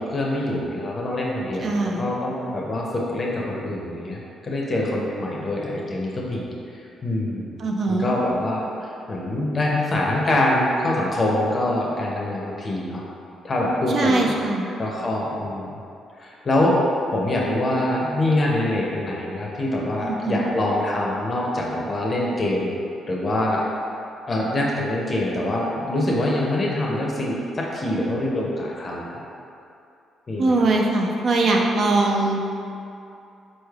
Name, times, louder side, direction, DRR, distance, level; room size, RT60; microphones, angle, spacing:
voice 1, 0.0-4.2 4.4-6.5 7.0-7.5 7.9-13.0 13.4-14.3 14.8-15.7 16.2-16.8 17.1-22.7 23.1-23.6 24.3-29.2 30.3-30.5, left 1 dB, 35° left, -3 dB, 0.5 m, -24 dB
voice 2, 1.6-2.1 7.6-8.1 13.9-14.7 20.0-20.4 30.4-32.4, right 2 dB, 55° right, 0 dB, 0.4 m, -21 dB
4.1 x 3.2 x 2.3 m, 2.6 s
cardioid pair, 90°, 0 cm